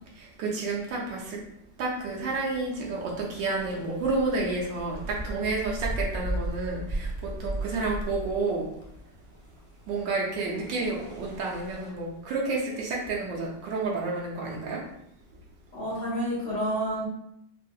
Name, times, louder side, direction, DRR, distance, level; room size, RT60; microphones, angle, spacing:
voice 1, 0.2-1.4 1.8-8.7 9.9-14.8, right 3 dB, 75° right, -2 dB, 1.2 m, -30 dB
sound 1, 2.0-11.9, right 1 dB, 45° right, 0.9 m, -37 dB
voice 2, 15.7-17.1, equal, 45° left, -9 dB, 1.1 m, -29 dB
3.6 x 2.5 x 2.3 m, 0.74 s
omnidirectional pair, 2.2 m